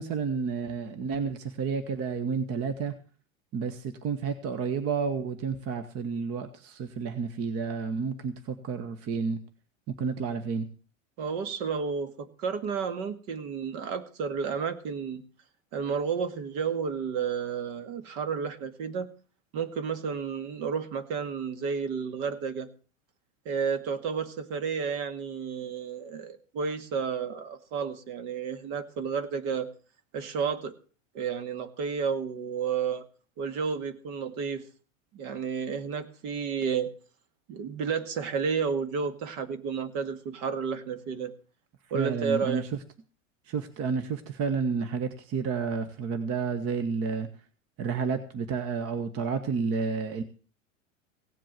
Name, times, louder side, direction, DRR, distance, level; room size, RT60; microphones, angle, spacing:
voice 1, 0.0-2.9 3.5-9.4 10.0-10.7 41.9-42.6 43.5-47.3 47.8-50.2, right 5 dB, 35° right, 10 dB, 1.4 m, -30 dB
voice 2, 11.2-15.2 15.7-19.1 19.5-22.7 23.5-29.7 30.1-30.7 31.1-33.1 33.4-34.6 35.1-36.9 37.5-41.3 41.9-42.7, right 6 dB, 55° right, 10 dB, 2.1 m, -31 dB
17.0 x 7.7 x 7.4 m, 0.39 s
hypercardioid pair, 100°, 39 cm